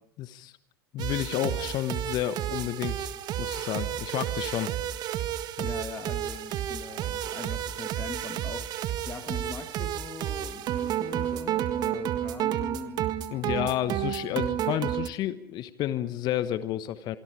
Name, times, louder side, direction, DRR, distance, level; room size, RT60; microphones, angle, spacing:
voice 1, 0.2-0.5 0.9-3.1 3.4-4.7 5.6-5.7 13.3-17.2, left 12 dB, 35° left, 1.2 m, -31 dB
sound 1, 1.0-15.1, right 11 dB, 35° right, 1.7 m, -31 dB
voice 2, 5.6-13.1, left 5 dB, 15° left, 2.1 m, -41 dB
26.5 x 24.0 x 4.9 m
figure-of-eight pair, 90°, 12 cm